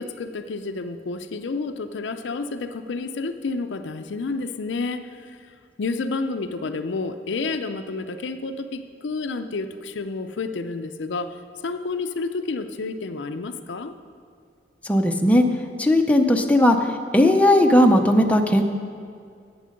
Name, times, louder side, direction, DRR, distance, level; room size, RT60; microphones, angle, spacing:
voice 1, 0.0-13.9, left 3 dB, 80° left, 8 dB, 0.5 m, -30 dB
voice 2, 14.9-15.4 15.8-16.8 17.1-18.6, left 1 dB, 10° left, 3 dB, 0.6 m, -17 dB
10.5 x 8.6 x 5.1 m, 2.2 s
head